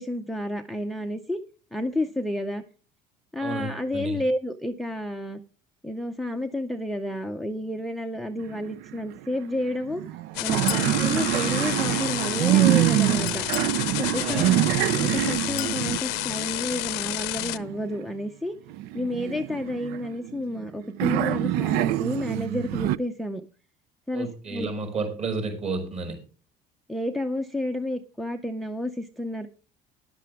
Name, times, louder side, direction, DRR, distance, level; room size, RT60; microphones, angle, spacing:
voice 1, 0.0-1.4 1.7-2.6 3.3-5.4 5.8-10.0 10.4-13.4 14.0-14.5 15.0-18.5 18.9-23.4 24.1-24.7 26.9-29.5, left 1 dB, ahead, 8 dB, 0.5 m, -30 dB
voice 2, 3.4-4.2 10.7-11.6 14.2-14.6 24.1-26.2, right 3 dB, 40° right, 4 dB, 5.4 m, -32 dB
sound 1, 8.4-9.2 9.4-9.5 9.9-18.1 18.7-20.6 21.0-23.0, right 14 dB, 75° right, 0.5 m, -25 dB
sound 2, 10.3-17.6, left 20 dB, 90° left, 0.7 m, -30 dB
Chink clink, 10.7-11.0 13.3-13.8 15.6-15.8, left 16 dB, 50° left, 0.6 m, -34 dB
13.5 x 11.0 x 3.5 m, 0.37 s
cardioid pair, 175°, 17 cm